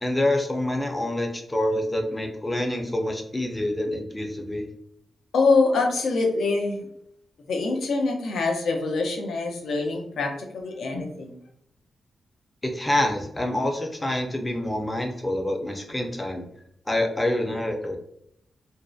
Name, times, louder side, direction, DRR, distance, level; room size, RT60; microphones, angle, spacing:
voice 1, 0.0-4.7 12.6-16.4 16.9-18.0, left 1 dB, 15° left, 3 dB, 0.4 m, -26 dB
voice 2, 5.3-6.9 7.5-11.4, left 3 dB, 85° left, 2 dB, 0.5 m, -24 dB
2.6 x 2.0 x 2.3 m, 0.72 s
wide cardioid pair, 110°, 0 cm